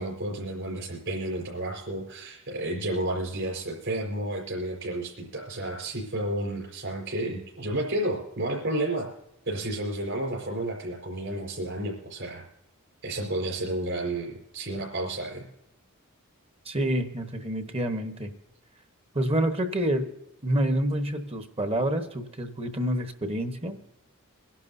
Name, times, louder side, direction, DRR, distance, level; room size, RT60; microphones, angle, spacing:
voice 1, 0.0-9.1 9.4-12.4 13.0-15.5, right 1 dB, 55° right, -1 dB, 4.8 m, -31 dB
voice 2, 16.6-18.3 19.1-20.1 20.4-23.8, right 1 dB, 25° right, 7 dB, 1.2 m, -28 dB
24.0 x 11.5 x 2.7 m, 0.88 s
head